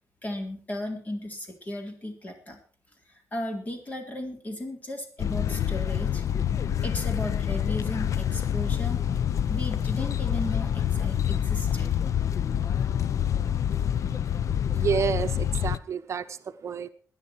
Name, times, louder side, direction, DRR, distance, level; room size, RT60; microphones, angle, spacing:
voice 1, 0.2-2.6 3.3-6.2 6.8-9.0 9.5-11.9, left 1 dB, 25° left, 4 dB, 3.8 m, -35 dB
sound 1, 5.2-15.8, left 9 dB, 65° left, 0.6 m, -27 dB
voice 2, 14.7-16.9, right 7 dB, 55° right, 9 dB, 0.8 m, -29 dB
19.5 x 10.5 x 4.6 m, 0.42 s
wide cardioid pair, 145°, 6 cm